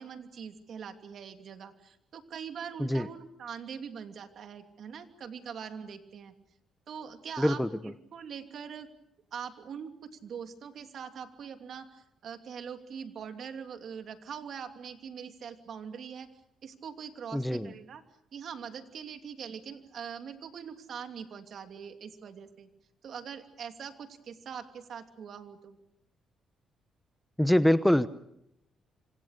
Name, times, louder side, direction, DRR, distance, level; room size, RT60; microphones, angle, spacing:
voice 1, 0.0-6.3 6.9-8.9 9.3-16.3 16.6-18.0 18.3-22.7 23.0-25.8, right 7 dB, 60° right, 7 dB, 2.8 m, -42 dB
voice 2, 7.4-7.7 17.3-17.7 27.4-28.1, left 1 dB, 5° left, 13 dB, 1.0 m, -24 dB
26.5 x 26.0 x 6.7 m, 0.79 s
cardioid pair, 90°, 0 cm